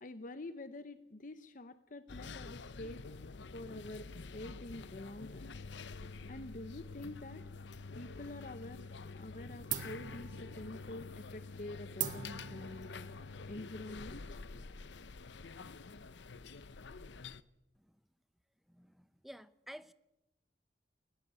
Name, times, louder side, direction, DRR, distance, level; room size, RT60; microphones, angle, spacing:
voice 1, 0.0-3.0 3.5-4.1 4.3-5.5 6.3-7.5 7.9-8.9 9.1-13.1 13.5-14.4, left 2 dB, 45° left, 12 dB, 0.8 m, -47 dB
sound 1, 2.1-17.4, left 4 dB, 85° left, 0.7 m, -48 dB
sound 2, 7.7-8.6 8.9-9.3 9.7-14.8, right 10 dB, 45° right, 1.9 m, -44 dB
voice 2, 18.7-19.9, equal, ahead, 14 dB, 0.7 m, -52 dB
20.5 x 17.0 x 8.3 m, 0.92 s
head